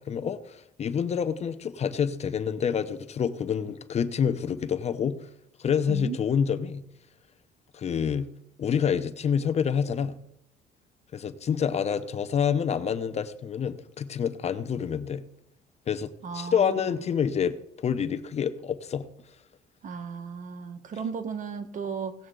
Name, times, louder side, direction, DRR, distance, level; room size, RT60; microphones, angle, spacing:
voice 1, 0.0-5.3 5.6-6.8 7.7-8.3 8.6-10.2 11.1-15.2 15.9-19.1, left 7 dB, 40° left, 11 dB, 0.7 m, -27 dB
voice 2, 16.2-16.9 19.8-22.1, right 6 dB, 50° right, 9 dB, 1.3 m, -35 dB
17.5 x 7.6 x 3.8 m, 0.76 s
cardioid pair, 110°, 17 cm